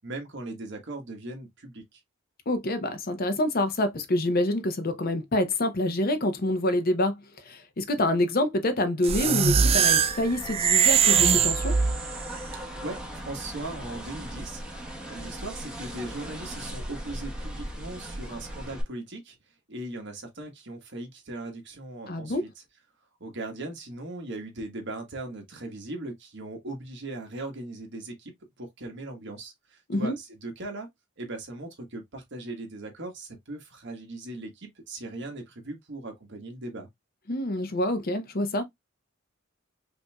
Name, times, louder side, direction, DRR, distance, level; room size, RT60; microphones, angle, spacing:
voice 1, 0.0-2.0 12.8-19.4 19.7-22.5 23.2-30.9 31.2-36.9, right 2 dB, 60° right, 1.3 m, -39 dB
voice 2, 2.5-11.8 22.1-22.4 29.9-30.1 37.3-38.6, left 1 dB, 50° left, 0.7 m, -27 dB
sound 1, 9.0-12.3, right 7 dB, 30° right, 0.3 m, -22 dB
sound 2, 9.1-18.8, equal, 5° right, 1.1 m, -38 dB
5.3 x 2.7 x 2.3 m
head